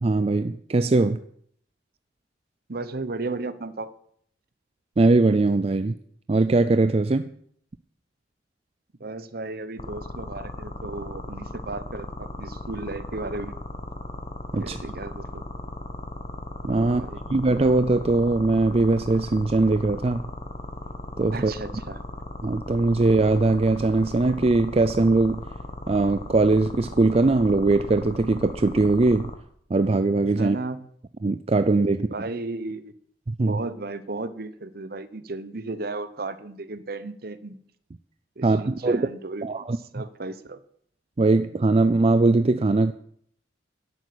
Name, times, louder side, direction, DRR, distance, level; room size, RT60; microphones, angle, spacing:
voice 1, 0.0-1.2 5.0-6.0 6.3-7.3 14.5-14.8 16.6-17.0 17.3-20.3 21.2-21.5 22.4-25.4 25.9-29.3 29.7-30.6 31.2-32.1 33.4-33.6 38.4-39.1 39.4-40.0 41.2-42.9, right 3 dB, 30° right, 12 dB, 0.4 m, -21 dB
voice 2, 2.7-3.9 9.0-13.6 14.6-15.4 16.8-17.2 21.3-22.0 30.4-30.9 32.1-32.9 33.5-37.6 38.4-39.7 39.9-40.6, right 3 dB, 55° right, 14 dB, 0.9 m, -34 dB
sound 1, 9.8-29.3, left 1 dB, 35° left, 1.4 m, -37 dB
11.0 x 8.3 x 8.4 m, 0.64 s
head